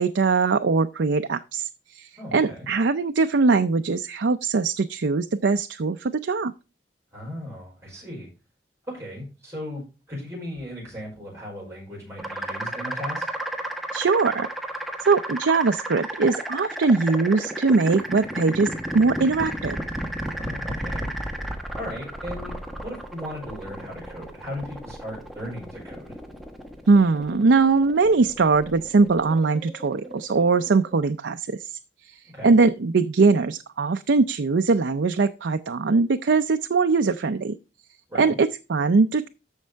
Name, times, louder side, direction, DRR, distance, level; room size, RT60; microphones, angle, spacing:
voice 1, 0.0-1.7 1.9-6.5 13.9-14.5 15.0-19.8 26.9-31.7 32.0-37.6 38.1-39.3, right 4 dB, 85° right, 8 dB, 0.5 m, -21 dB
voice 2, 2.1-2.7 7.1-8.3 8.9-13.3 20.3-21.1 21.7-26.1 32.3-32.5 38.1-38.4, left 1 dB, 15° right, -5 dB, 5.3 m, -37 dB
sound 1, 12.2-30.9, right 1 dB, ahead, 1.3 m, -33 dB
14.0 x 5.4 x 3.4 m, 0.30 s
head